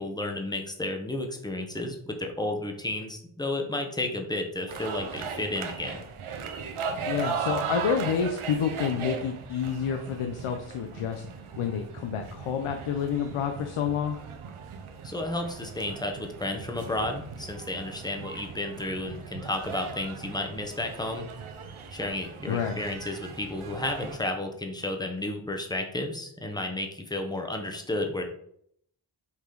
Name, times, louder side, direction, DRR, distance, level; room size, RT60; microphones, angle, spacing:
voice 1, 0.0-6.0 15.0-21.2 21.9-28.2, left 1 dB, 10° left, 4 dB, 0.8 m, -32 dB
sound 1, 4.7-24.2, right 6 dB, 80° right, 0.9 m, -38 dB
voice 2, 7.1-11.3 11.6-14.2 22.5-22.8, left 7 dB, 90° left, 5 dB, 0.7 m, -29 dB
5.5 x 5.0 x 3.8 m, 0.69 s
wide cardioid pair, 155°, 49 cm